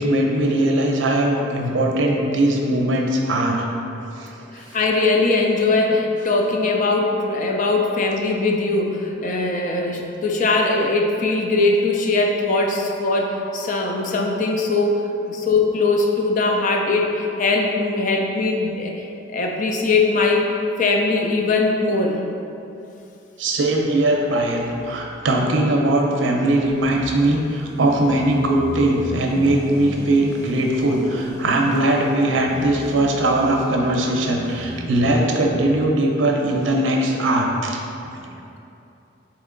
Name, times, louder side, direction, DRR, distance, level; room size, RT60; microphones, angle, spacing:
voice 1, 0.0-3.6 4.1-4.4 23.4-37.8 38.1-38.3, right 1 dB, 85° right, 1 dB, 0.5 m, -20 dB
voice 2, 4.5-15.0 15.3-19.1 19.3-20.4 20.8-22.2, left 3 dB, 45° left, 1 dB, 0.4 m, -20 dB
sound 1, 23.5-25.2 25.8-35.7, equal, 20° left, 0.8 m, -36 dB
4.3 x 3.0 x 3.8 m, 2.8 s
head